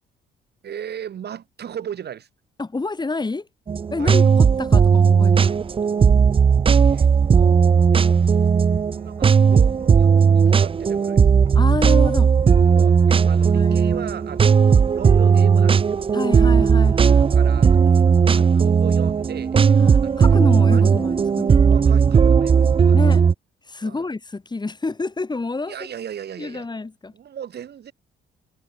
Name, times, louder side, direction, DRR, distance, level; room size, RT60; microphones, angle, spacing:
voice 1, 0.6-2.3 4.0-4.2 6.6-7.8 8.1-8.3 8.6-11.4 12.7-13.0 13.2-16.0 17.2-17.8 18.3-19.6 20.0-20.4 20.7-20.8 21.6-23.0 23.8-24.0 25.7-26.7 27.1-27.9, right 9 dB, 55° right, 1.6 m, -37 dB
voice 2, 2.6-3.5 3.9-5.6 11.5-12.3 13.5-14.0 16.1-17.3 18.0-18.5 19.8-21.9 22.9-23.3 23.6-25.7 26.4-27.1, left 3 dB, 20° left, 2.6 m, -28 dB
sound 1, 3.7-23.3, right 6 dB, 25° right, 0.4 m, -16 dB
sound 2, 3.8-18.4, equal, 5° left, 5.8 m, -53 dB
cardioid pair, 90°, 20 cm